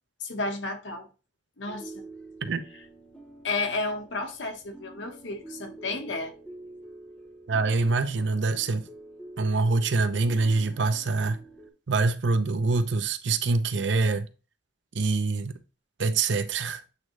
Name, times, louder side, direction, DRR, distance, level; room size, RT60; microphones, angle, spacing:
voice 1, 0.2-1.1 1.6-2.0 3.4-6.3, left 3 dB, 85° left, 1.3 m, -32 dB
sound 1, 1.7-11.7, right 2 dB, 5° left, 1.2 m, -47 dB
voice 2, 7.5-8.8 9.4-11.4 11.9-14.3 14.9-15.5 16.0-16.8, right 3 dB, 75° right, 0.7 m, -25 dB
8.1 x 3.7 x 3.2 m
head